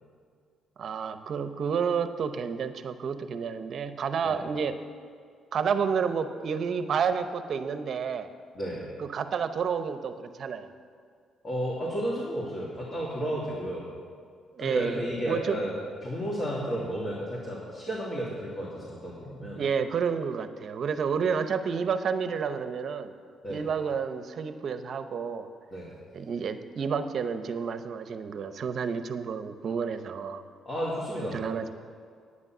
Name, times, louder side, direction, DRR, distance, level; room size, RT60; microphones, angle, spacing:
voice 1, 0.8-4.8 5.5-8.3 9.0-10.7 14.5-15.0 15.3-15.6 19.6-23.1 23.5-25.5 26.1-30.4 31.3-31.7, right 6 dB, 60° right, 10 dB, 0.7 m, -30 dB
voice 2, 11.4-13.9 14.6-19.6 23.4-23.6 25.7-25.9 30.6-31.4, equal, 35° left, -7 dB, 2.6 m, -32 dB
9.7 x 9.6 x 6.1 m, 2.1 s
cardioid pair, 90°, 0 cm